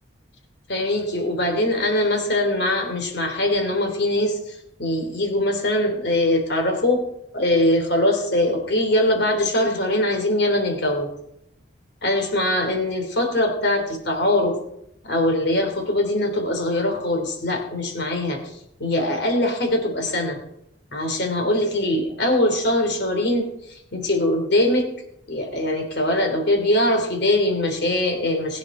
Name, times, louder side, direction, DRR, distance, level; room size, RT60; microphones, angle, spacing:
voice 1, 0.7-7.0 7.3-11.1 12.0-14.6 15.0-18.4 18.8-20.4 20.9-24.9 25.3-28.6, left 1 dB, 60° left, 4 dB, 3.2 m, -22 dB
20.0 x 9.6 x 4.4 m, 0.77 s
head